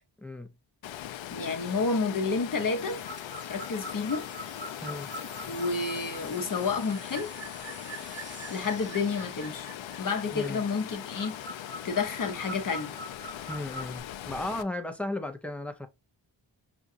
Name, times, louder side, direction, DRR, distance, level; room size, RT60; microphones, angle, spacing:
voice 1, 0.2-0.5 4.8-5.1 10.3-10.6 13.5-15.9, left 2 dB, 5° left, 0.6 m, -35 dB
Water, 0.8-14.6, left 11 dB, 85° left, 0.5 m, -40 dB
voice 2, 1.3-3.0 3.5-4.2 5.5-7.3 8.5-9.7 10.0-11.3 11.8-13.0, left 4 dB, 45° left, 0.9 m, -30 dB
sound 1, 2.8-9.8, right 2 dB, 25° right, 1.2 m, -50 dB
sound 2, 2.9-14.0, right 2 dB, 75° right, 1.6 m, -44 dB
6.0 x 2.4 x 2.5 m
wide cardioid pair, 100°, 44 cm